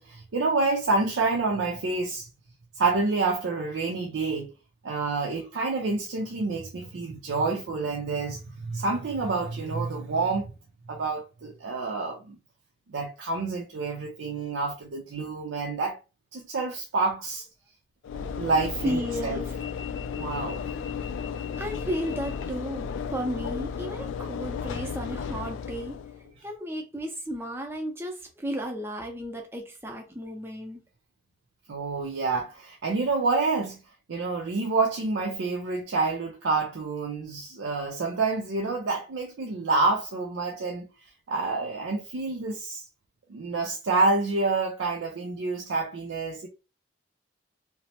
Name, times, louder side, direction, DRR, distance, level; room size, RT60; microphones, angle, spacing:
voice 1, 0.0-2.3 2.7-4.5 4.8-10.5 10.9-12.4 12.9-16.0 16.3-17.5 18.1-19.4 20.2-20.6 31.7-33.8 34.1-40.9 41.3-42.8 43.3-46.5, right 3 dB, 85° right, 0.5 m, -28 dB
Train / Engine / Alarm, 18.0-26.3, left 6 dB, 80° left, 0.3 m, -34 dB
voice 2, 18.8-19.5 21.6-26.0 26.4-30.8, equal, 10° right, 0.5 m, -33 dB
3.0 x 2.0 x 2.8 m
head